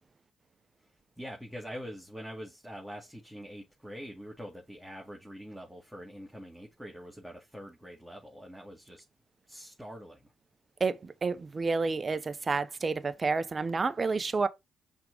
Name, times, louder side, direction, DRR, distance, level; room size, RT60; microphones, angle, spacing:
voice 1, 1.2-9.0 9.5-10.2, equal, 5° right, 2.3 m, -44 dB
voice 2, 10.8-14.5, right 4 dB, 40° right, 0.8 m, -30 dB
5.8 x 3.8 x 4.9 m
hypercardioid pair, 45°, 0 cm